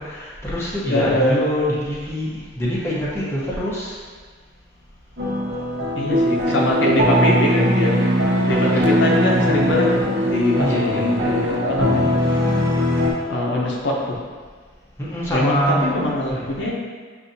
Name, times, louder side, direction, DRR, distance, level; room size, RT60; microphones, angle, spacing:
voice 1, 0.0-4.0 8.7-8.8 10.6-11.3 15.0-15.9 16.3-16.4, equal, 15° left, -8 dB, 0.7 m, -25 dB
voice 2, 0.9-1.4 5.9-8.0 8.5-12.4 13.3-14.2 15.3-16.7, left 1 dB, 70° left, -3 dB, 0.7 m, -23 dB
sound 1, 5.2-13.1, equal, 55° right, 0.9 m, -21 dB
sound 2, 6.1-11.6, equal, 75° right, 0.6 m, -25 dB
6.6 x 2.6 x 2.6 m, 1.5 s
head